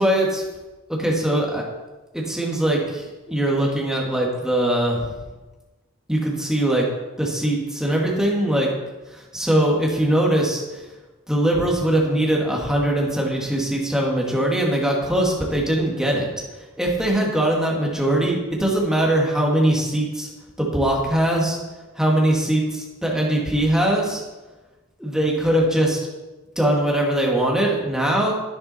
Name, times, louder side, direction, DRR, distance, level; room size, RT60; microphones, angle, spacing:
voice 1, 0.0-0.4 0.9-1.6 2.1-5.0 6.1-6.9 7.2-8.7 9.1-10.9 11.3-16.4 16.8-20.3 20.6-21.6 22.0-24.2 25.0-26.0 26.6-28.3, right 1 dB, 5° right, -2 dB, 2.2 m, -21 dB
11.0 x 9.8 x 4.4 m, 1.2 s
head